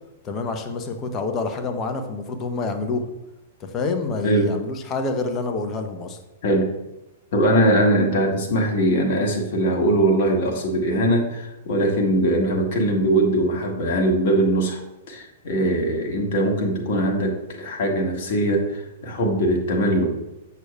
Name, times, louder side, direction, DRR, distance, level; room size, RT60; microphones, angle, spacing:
voice 1, 0.2-3.1 3.6-6.2, left 3 dB, 25° left, 6 dB, 0.8 m, -27 dB
voice 2, 4.2-4.6 6.4-6.7 7.3-14.8 15.1-20.1, right 1 dB, 50° left, 2 dB, 1.3 m, -21 dB
8.0 x 6.3 x 2.3 m, 0.95 s
figure-of-eight pair, 105°, 0 cm